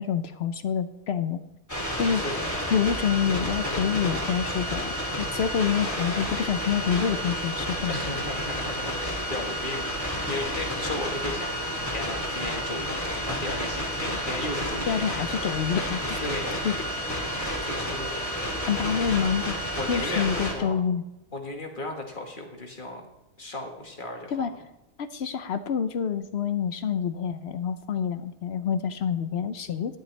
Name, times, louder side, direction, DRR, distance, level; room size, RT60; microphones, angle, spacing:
voice 1, 0.0-1.4 2.0-2.3 2.7-7.9 14.9-16.3 16.6-16.9 18.7-19.6 19.9-21.0 24.3-24.5 25.0-30.0, left 7 dB, 65° left, 11 dB, 0.9 m, -27 dB
sound 1, 1.7-20.5, equal, 15° left, 2.6 m, -30 dB
voice 2, 7.9-15.0 16.2-16.6 17.6-18.6 18.9-19.4 19.7-20.8 21.3-23.0 23.4-24.5, left 2 dB, 45° left, 2 dB, 1.8 m, -36 dB
13.5 x 11.5 x 3.3 m, 0.91 s
omnidirectional pair, 1.2 m